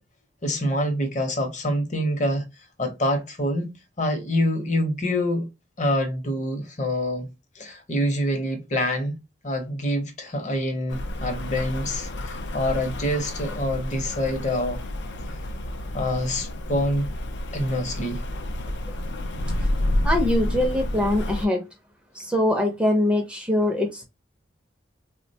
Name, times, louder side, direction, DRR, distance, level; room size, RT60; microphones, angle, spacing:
voice 1, 0.4-2.4 2.8-3.7 4.0-5.5 5.8-7.3 7.6-9.1 9.4-14.8 15.9-17.1 17.5-18.2, left 1 dB, 40° left, 0.8 m, -26 dB
Rain, 10.9-21.5, left 1 dB, 70° left, 0.5 m, -29 dB
voice 2, 20.0-21.6 22.1-24.0, left 1 dB, 5° right, 0.5 m, -23 dB
3.6 x 2.1 x 2.6 m
head